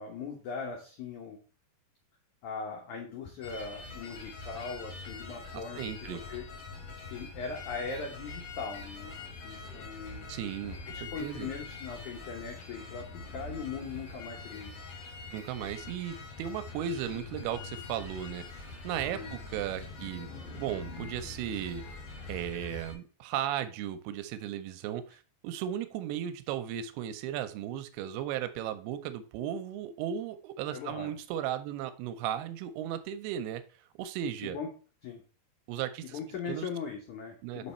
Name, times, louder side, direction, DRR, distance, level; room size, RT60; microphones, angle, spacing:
voice 1, 0.0-1.4 2.4-6.5 7.1-9.2 9.4-10.3 11.0-14.8 19.0-19.3 30.7-31.1 34.4-34.7 35.0-35.2 36.0-37.7, left 5 dB, 85° left, 1 dB, 1.7 m, -40 dB
sound 1, 3.4-22.9, left 3 dB, 50° left, 1.8 m, -44 dB
voice 2, 5.5-6.2 10.3-11.5 15.3-22.0 22.3-33.6 34.0-34.6 35.7-36.2 36.5-36.7 37.4-37.7, right 10 dB, 80° right, 11 dB, 2.4 m, -36 dB
5.3 x 5.3 x 4.2 m, 0.37 s
omnidirectional pair, 5.0 m